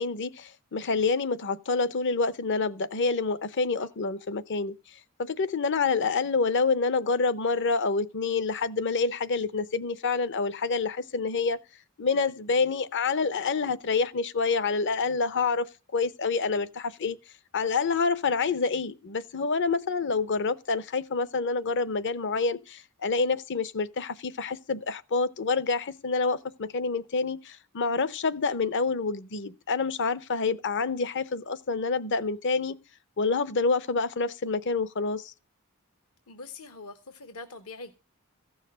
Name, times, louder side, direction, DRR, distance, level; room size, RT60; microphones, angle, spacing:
voice 1, 0.0-4.7 5.2-11.6 12.0-15.7 15.9-17.2 17.5-32.8 33.2-35.3, left 4 dB, 55° left, 0.7 m, -27 dB
voice 2, 36.3-37.9, left 3 dB, 70° left, 1.0 m, -43 dB
15.5 x 6.4 x 6.6 m
head